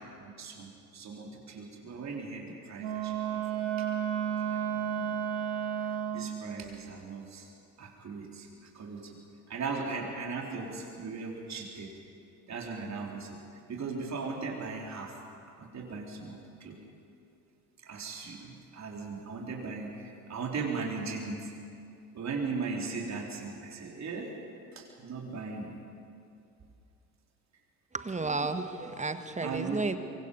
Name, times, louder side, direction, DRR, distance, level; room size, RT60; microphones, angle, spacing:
voice 1, 0.2-3.7 4.5-5.3 5.8-7.5 7.8-8.5 8.7-9.2 9.5-11.9 12.5-13.4 13.7-15.2 15.6-16.8 17.8-21.5 22.1-24.4 24.8-25.8 29.4-30.0, right 4 dB, 35° right, -1 dB, 4.1 m, -38 dB
Wind instrument woodwind instrument, 2.8-6.4, right 9 dB, 65° right, 1.8 m, -32 dB
voice 2, 27.9-30.0, right 3 dB, 15° right, 10 dB, 1.5 m, -32 dB
25.5 x 24.0 x 5.5 m, 2.5 s
figure-of-eight pair, 55°, 45 cm